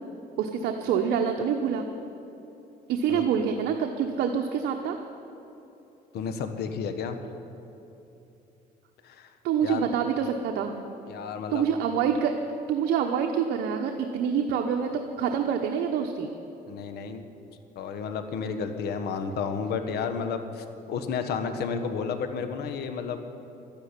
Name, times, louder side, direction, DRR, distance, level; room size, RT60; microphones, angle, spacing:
voice 1, 0.4-1.9 2.9-5.0 9.4-10.7 11.5-12.4 12.7-16.3, right 7 dB, 75° right, 3 dB, 1.0 m, -26 dB
voice 2, 6.1-7.3 9.0-9.3 9.6-9.9 11.1-11.6 16.7-17.2 17.7-23.2, left 6 dB, 70° left, 8 dB, 1.4 m, -32 dB
12.5 x 10.5 x 9.8 m, 2.9 s
cardioid pair, 110°, 17 cm